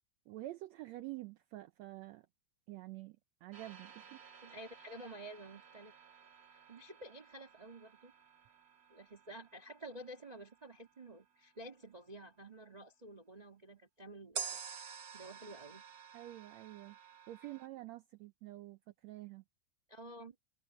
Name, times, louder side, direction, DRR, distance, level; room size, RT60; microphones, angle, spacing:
voice 1, 0.3-2.3 2.7-4.2 16.1-19.4, right 16 dB, 85° right, 1.5 m, -48 dB
sound 1, 3.5-11.5 14.3-17.7, right 6 dB, 50° right, 1.1 m, -50 dB
voice 2, 4.4-5.9 6.5-8.1 8.9-15.8 19.9-20.3, right 1 dB, 20° right, 1.1 m, -51 dB
omnidirectional pair, 3.8 m